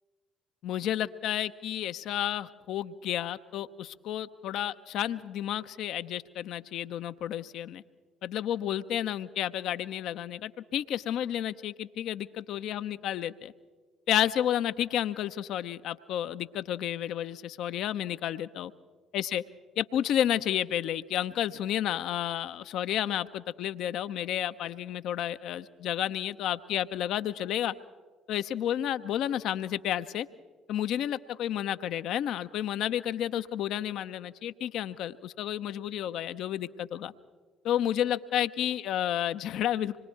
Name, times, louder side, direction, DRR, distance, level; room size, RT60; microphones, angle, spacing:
voice 1, 0.6-7.8 8.2-13.5 14.1-18.7 19.1-19.4 19.8-27.7 28.3-30.3 30.7-37.1 37.6-40.0, left 11 dB, 60° left, 12 dB, 0.7 m, -31 dB
26.0 x 22.0 x 4.6 m, 1.4 s
figure-of-eight pair, 50°, 0 cm